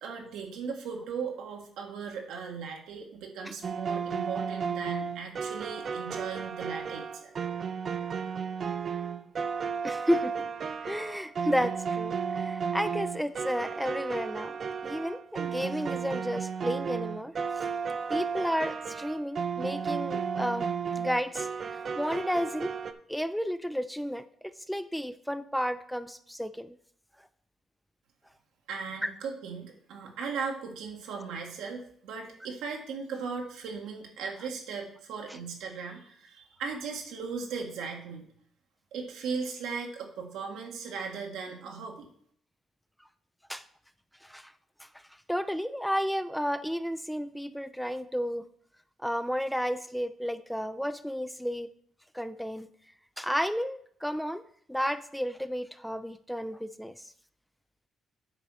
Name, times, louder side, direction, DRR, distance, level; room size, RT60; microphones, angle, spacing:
voice 1, 0.0-7.3 28.7-38.3 38.9-42.1, right 5 dB, 90° right, 1 dB, 1.8 m, -37 dB
sound 1, 3.6-22.9, right 6 dB, 50° right, 0.7 m, -33 dB
voice 2, 9.8-10.3 10.8-14.5 14.8-17.7 18.1-20.7 21.0-22.7 23.1-26.8 29.0-29.1 43.5-43.6 44.2-44.5 44.8-44.9 45.3-48.5 49.0-51.7 52.1-52.7 53.2-54.4 54.7-56.9, equal, ahead, 12 dB, 0.5 m, -32 dB
9.0 x 4.2 x 6.3 m, 0.62 s
cardioid pair, 90°, 0 cm